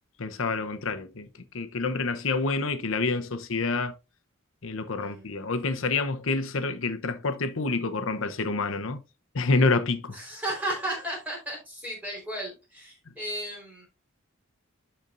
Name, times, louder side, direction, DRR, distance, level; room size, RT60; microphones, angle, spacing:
voice 1, 0.2-1.3 1.5-3.9 4.6-9.0 9.3-10.2, left 3 dB, 70° left, 0.8 m, -27 dB
voice 2, 10.1-13.9, right 1 dB, 10° right, 4.1 m, -34 dB
12.0 x 4.4 x 2.5 m
head